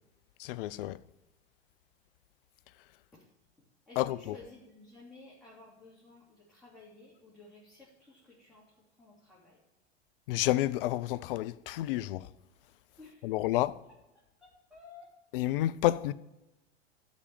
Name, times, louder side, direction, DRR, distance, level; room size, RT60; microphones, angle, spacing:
voice 1, 0.4-1.0 4.0-4.4 10.3-12.3 13.2-13.8 15.3-16.1, left 15 dB, 55° left, 0.5 m, -30 dB
voice 2, 3.9-8.6 9.0-9.6 13.0-13.4 14.7-15.1, left 3 dB, ahead, 3.5 m, -54 dB
13.0 x 5.1 x 7.2 m
hypercardioid pair, 95°, 34 cm